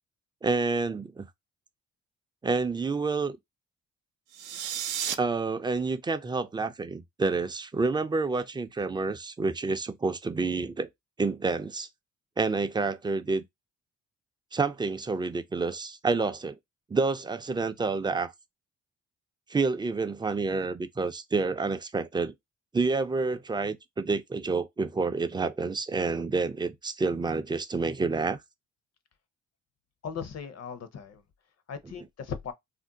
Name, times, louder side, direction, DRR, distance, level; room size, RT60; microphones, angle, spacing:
voice 1, 0.4-1.3 2.4-3.4 5.2-10.9 11.2-11.9 12.4-13.4 14.5-16.6 16.9-18.3 19.5-22.3 22.7-28.4, right 4 dB, 15° right, 0.4 m, -28 dB
sound 1, 4.3-5.1, right 9 dB, 80° right, 0.5 m, -32 dB
voice 2, 30.0-31.2 31.7-32.5, left 6 dB, 55° left, 0.7 m, -38 dB
2.6 x 2.1 x 3.7 m
cardioid pair, 85°, 30 cm